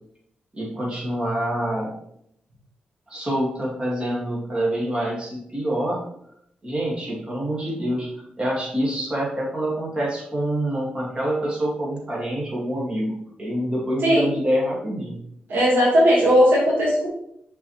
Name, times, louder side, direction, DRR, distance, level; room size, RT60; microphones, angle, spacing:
voice 1, 0.5-1.9 3.1-6.0 6.6-8.1 8.4-15.2, right 1 dB, 30° right, -4 dB, 2.3 m, -26 dB
voice 2, 15.5-17.1, equal, 80° right, -4 dB, 2.1 m, -17 dB
6.2 x 4.8 x 3.4 m, 0.73 s
cardioid pair, 80°, 3 cm